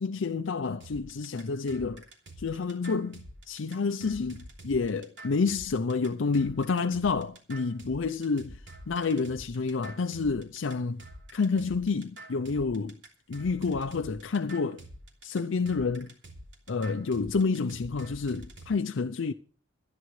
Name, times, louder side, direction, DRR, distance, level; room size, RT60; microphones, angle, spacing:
voice 1, 0.0-2.0 2.4-8.6 8.9-11.0 11.3-13.0 13.3-14.8 15.2-16.1 16.7-19.3, left 4 dB, 75° left, 0.5 m, -29 dB
sound 1, 0.8-18.7, right 1 dB, 65° right, 3.1 m, -47 dB
25.5 x 10.5 x 3.2 m
head